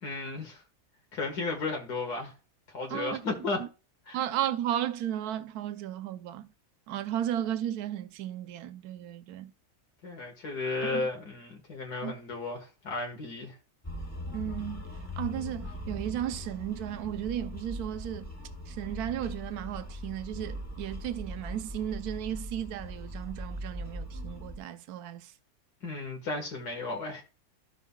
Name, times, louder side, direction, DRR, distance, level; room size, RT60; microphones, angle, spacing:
voice 1, 0.0-0.6 1.1-2.3 2.7-3.6 4.1-4.2 10.0-13.6 25.8-27.2, left 3 dB, 85° left, 2.2 m, -34 dB
voice 2, 2.9-3.2 3.6-3.7 4.1-6.5 6.9-9.5 10.8-11.1 12.0-12.1 14.3-14.9 15.2-18.3 18.7-25.3, right 11 dB, 75° right, 1.2 m, -34 dB
sound 1, 13.8-24.6, equal, 10° left, 1.2 m, -40 dB
15.0 x 5.6 x 2.3 m
omnidirectional pair, 1.7 m